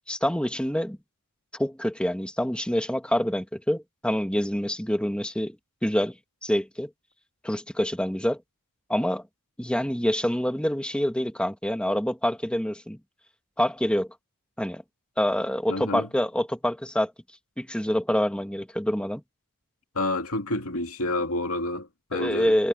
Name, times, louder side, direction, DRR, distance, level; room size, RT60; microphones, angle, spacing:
voice 1, 0.1-1.0 1.5-5.6 5.8-6.1 6.4-6.9 7.4-8.4 8.9-9.2 9.6-13.0 13.6-14.1 14.6-14.8 15.2-17.1 17.6-19.2 22.1-22.7, equal, 5° left, 2.0 m, -26 dB
voice 2, 15.7-16.1 19.9-22.5, left 2 dB, 80° left, 2.4 m, -29 dB
head